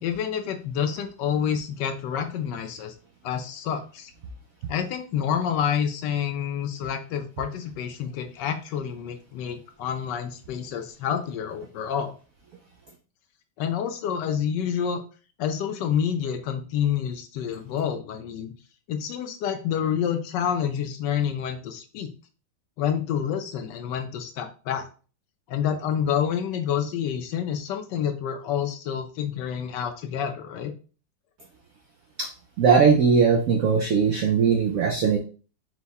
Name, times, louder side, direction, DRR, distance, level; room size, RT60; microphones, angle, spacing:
voice 1, 0.0-2.9 3.2-4.1 4.7-12.1 13.6-15.0 15.4-18.5 18.9-22.1 22.8-24.9 25.5-30.7, left 8 dB, 75° left, 7 dB, 1.1 m, -28 dB
voice 2, 32.6-35.2, right 6 dB, 80° right, 4 dB, 0.7 m, -19 dB
4.6 x 2.1 x 4.0 m, 0.37 s
omnidirectional pair, 2.1 m